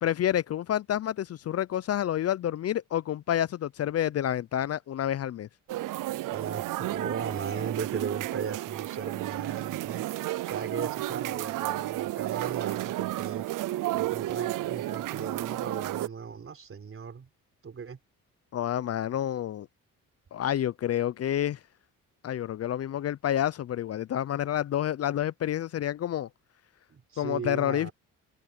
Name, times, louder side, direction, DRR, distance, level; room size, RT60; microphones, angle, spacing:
voice 1, 0.0-5.5 18.5-19.7 20.3-21.6 22.2-26.3 27.2-27.9, left 11 dB, 45° left, 0.6 m, -29 dB
sound 1, 5.7-16.1, right 16 dB, 65° right, 0.7 m, -32 dB
voice 2, 6.3-10.0 10.4-13.5 13.9-17.3 17.6-18.0 26.9-27.9, right 6 dB, 40° right, 4.1 m, -37 dB
cardioid pair, 85°, 34 cm